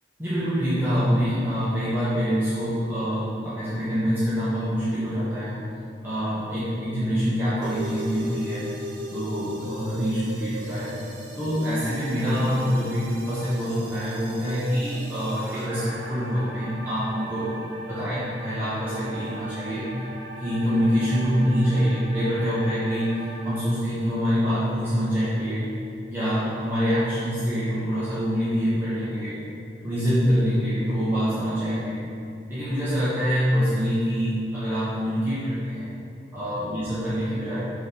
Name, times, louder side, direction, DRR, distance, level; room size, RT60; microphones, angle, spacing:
voice 1, 0.2-5.6 6.0-8.7 9.1-11.0 11.3-19.9 20.4-25.7 26.1-29.4 29.8-32.0 32.5-35.9 36.3-37.7, equal, 10° right, -13 dB, 1.2 m, -25 dB
sound 1, 7.6-23.6, right 1 dB, 70° right, 1.2 m, -39 dB
7.1 x 3.9 x 5.6 m, 2.5 s
head